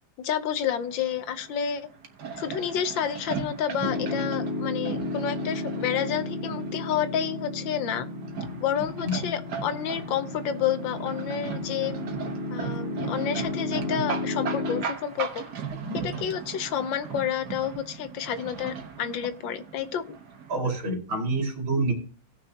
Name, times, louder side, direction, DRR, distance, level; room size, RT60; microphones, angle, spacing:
voice 1, 0.2-1.9 2.4-8.1 8.6-11.9 12.5-15.4 15.9-20.2, left 9 dB, 75° left, 11 dB, 1.5 m, -30 dB
sound 1, 0.7-20.6, right 6 dB, 60° right, 1.7 m, -38 dB
Piano, 3.8-14.8, left 2 dB, 30° left, 0.7 m, -33 dB
voice 2, 20.5-21.9, right 2 dB, 85° right, 0 dB, 3.3 m, -27 dB
18.0 x 6.2 x 2.8 m, 0.41 s
omnidirectional pair, 2.1 m